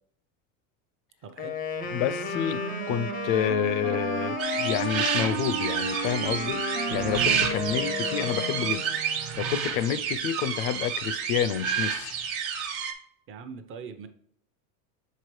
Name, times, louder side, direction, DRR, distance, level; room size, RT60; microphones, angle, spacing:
voice 1, 1.2-1.5 13.3-14.1, right 5 dB, 30° right, 0.6 m, -41 dB
Wind instrument woodwind instrument, 1.4-9.0, left 6 dB, 20° left, 0.4 m, -34 dB
Wind instrument woodwind instrument 2, 1.8-9.8, right 10 dB, 85° right, 0.5 m, -35 dB
voice 2, 1.9-6.7 6.9-8.9 9.3-12.2, left 10 dB, 75° left, 0.6 m, -29 dB
sound 1, 4.4-12.9, right 7 dB, 65° right, 1.0 m, -30 dB
6.6 x 4.8 x 3.1 m
supercardioid pair, 140°, 41 cm